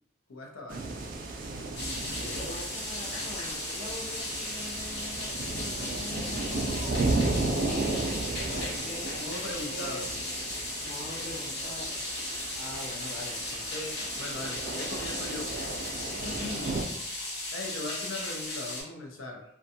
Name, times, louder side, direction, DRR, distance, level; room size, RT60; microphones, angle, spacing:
voice 1, 0.3-0.9 9.2-10.1 12.5-15.8 16.2-16.7 17.2-19.4, left 2 dB, 85° left, 1 dB, 0.5 m, -40 dB
sound 1, 0.7-16.8, right 3 dB, 40° right, 0.3 m, -35 dB
sound 2, 1.7-18.8, left 1 dB, 55° left, 0.8 m, -36 dB
voice 2, 2.1-7.2 7.6-9.1 9.7-10.2 10.8-12.5, left 1 dB, 35° left, -2 dB, 0.4 m, -42 dB
2.5 x 2.2 x 2.6 m, 0.76 s
head